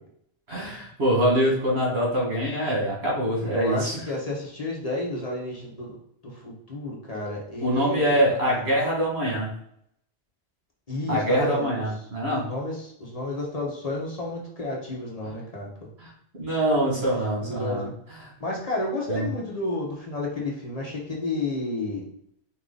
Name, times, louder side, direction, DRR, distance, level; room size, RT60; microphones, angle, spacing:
voice 1, 0.5-4.0 7.6-9.5 11.1-12.5 16.0-16.1 16.4-17.9 19.1-19.3, equal, 75° right, -4 dB, 2.1 m, -24 dB
voice 2, 3.4-6.0 6.2-8.1 8.4-8.6 10.9-11.7 12.3-15.7 16.9-17.0 17.4-17.9 18.4-22.0, left 2 dB, 35° left, -3 dB, 1.1 m, -31 dB
4.7 x 2.9 x 3.9 m, 0.69 s
omnidirectional pair, 1.1 m